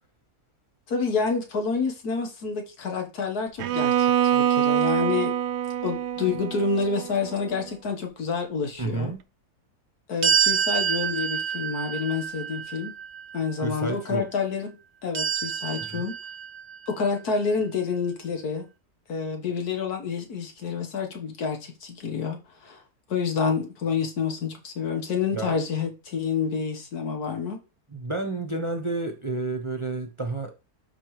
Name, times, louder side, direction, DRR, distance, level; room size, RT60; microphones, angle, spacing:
voice 1, 0.9-5.3 5.8-9.1 10.1-12.9 13.3-14.7 15.0-16.2 16.9-18.7 19.1-22.8 23.1-27.6, left 5 dB, 80° left, 1.9 m, -28 dB
Bowed string instrument, 3.6-7.6, right 10 dB, 90° right, 1.2 m, -25 dB
voice 2, 8.8-9.2 13.6-14.3 15.8-16.0 25.3-25.6 27.9-30.5, right 3 dB, 25° right, 0.8 m, -30 dB
sound 1, 10.2-13.4 15.1-16.9, right 7 dB, 50° right, 1.0 m, -27 dB
12.0 x 4.7 x 3.2 m
omnidirectional pair, 1.6 m